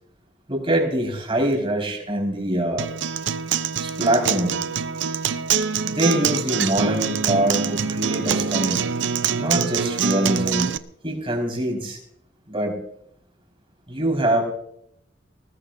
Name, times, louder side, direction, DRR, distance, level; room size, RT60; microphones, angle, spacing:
voice 1, 0.5-2.9 3.8-4.6 5.8-8.8 9.4-10.7 11.0-12.0 12.5-12.7 13.9-14.5, right 1 dB, 30° right, 1 dB, 4.9 m, -24 dB
Acoustic guitar, 2.8-10.8, right 6 dB, 75° right, 0.6 m, -24 dB
20.5 x 19.0 x 2.6 m, 0.71 s
head